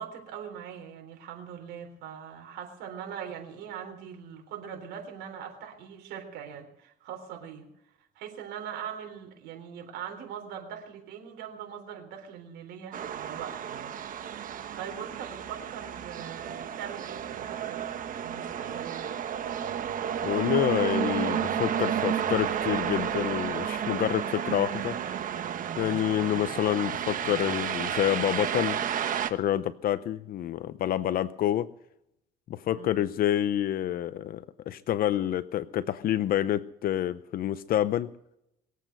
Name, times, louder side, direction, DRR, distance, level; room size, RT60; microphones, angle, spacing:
voice 1, 0.0-7.7 8.2-14.0 14.8-17.8 18.2-19.1 32.7-32.9, right 8 dB, 90° right, 4 dB, 3.7 m, -41 dB
sound 1, 12.9-29.3, right 9 dB, 55° right, 1.2 m, -32 dB
voice 2, 20.2-25.0 25.8-28.8 29.3-31.7 32.5-38.1, left 12 dB, 60° left, 14 dB, 0.7 m, -28 dB
22.0 x 8.3 x 7.8 m, 0.81 s
cardioid pair, 110°, 17 cm